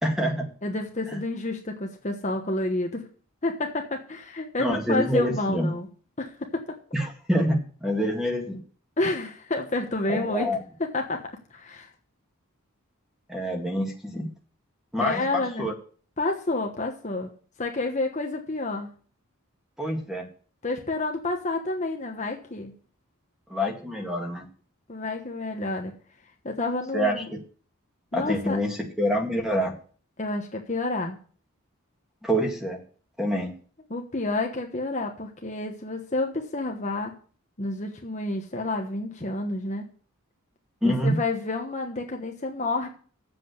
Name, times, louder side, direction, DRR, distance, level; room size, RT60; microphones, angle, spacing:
voice 1, 0.0-0.5 1.1-1.2 4.6-5.7 6.9-8.6 10.1-10.6 13.3-14.3 14.9-15.7 19.8-20.3 23.5-24.5 26.9-27.2 28.1-29.7 32.2-32.8 33.2-33.5 40.8-41.2, equal, ahead, 2 dB, 2.0 m, -26 dB
voice 2, 0.6-3.1 3.4-5.9 6.2-6.8 9.0-10.5 10.8-11.9 15.0-15.7 16.2-17.3 17.6-18.9 20.6-22.7 24.9-25.9 26.4-27.3 28.1-28.6 30.2-31.2 33.9-37.1 37.6-39.8 40.8-42.9, left 2 dB, 35° left, 2 dB, 1.2 m, -29 dB
7.6 x 7.6 x 8.0 m, 0.43 s
head